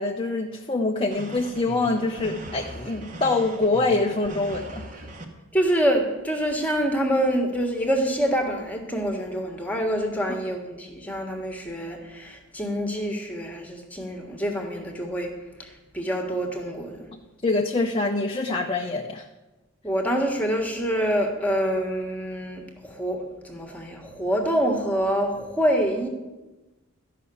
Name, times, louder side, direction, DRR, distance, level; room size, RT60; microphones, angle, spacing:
voice 1, 0.0-4.8 17.4-19.2, left 3 dB, 25° left, 2 dB, 0.6 m, -25 dB
sound 1, 1.1-5.2, right 1 dB, 35° right, 1.2 m, -39 dB
voice 2, 5.5-15.3 15.6-17.1 19.8-26.1, equal, 5° left, 3 dB, 1.4 m, -26 dB
13.0 x 5.8 x 8.4 m, 1.1 s
head